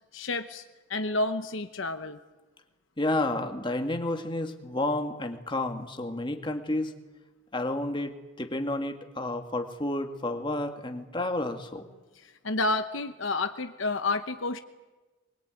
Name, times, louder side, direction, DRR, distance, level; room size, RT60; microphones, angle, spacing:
voice 1, 0.1-0.6 0.9-2.2 12.4-14.6, left 2 dB, 65° left, 8 dB, 1.1 m, -29 dB
voice 2, 3.0-6.9 7.5-11.9, left 2 dB, 25° left, 5 dB, 1.9 m, -31 dB
23.5 x 22.0 x 9.1 m, 1.2 s
head